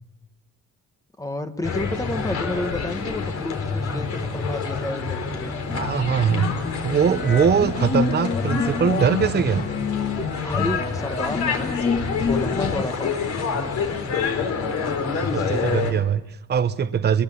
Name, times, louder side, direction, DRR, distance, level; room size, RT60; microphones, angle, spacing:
voice 1, 1.2-5.5 10.4-11.8 12.3-13.1 15.2-15.8, left 2 dB, 10° left, 9 dB, 1.2 m, -31 dB
sound 1, 1.6-15.9, left 5 dB, 60° left, 4.2 m, -27 dB
sound 2, 5.7-12.8, left 5 dB, 30° left, 1.9 m, -28 dB
voice 2, 5.7-6.5 6.8-9.7 15.0-17.2, right 7 dB, 35° right, 10 dB, 0.9 m, -22 dB
24.0 x 21.5 x 8.6 m, 0.94 s
cardioid pair, 165°, 31 cm